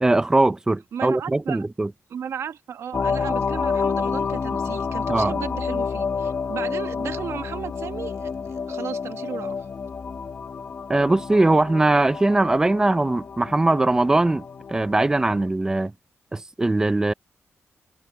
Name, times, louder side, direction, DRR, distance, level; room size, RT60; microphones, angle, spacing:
voice 1, 0.0-1.9 5.1-5.3 10.9-15.9 16.3-17.1, right 2 dB, 15° right, 0.5 m, -21 dB
voice 2, 0.9-1.7 2.1-9.6, right 8 dB, 75° right, 1.4 m, -35 dB
sound 1, 2.9-15.5, left 5 dB, 40° left, 0.8 m, -29 dB
wide cardioid pair, 150°, 5 cm